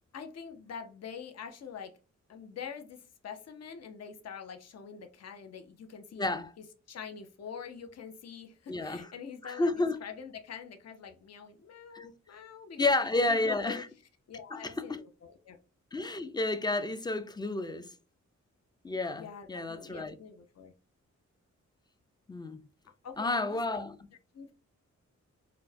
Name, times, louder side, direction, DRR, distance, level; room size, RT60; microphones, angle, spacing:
voice 1, 0.1-1.9 2.3-6.3 6.6-13.8 14.3-15.6 19.2-20.7 23.0-23.8 24.3-24.5, left 7 dB, 60° left, 0.6 m, -45 dB
voice 2, 6.2-6.5 8.7-9.1 9.4-10.0 11.9-12.1 12.8-13.9 14.5-14.6 15.9-17.9 18.8-20.2 22.3-22.6 23.2-23.9, left 2 dB, 15° left, 0.3 m, -30 dB
4.2 x 2.1 x 2.6 m
wide cardioid pair, 125°, 30 cm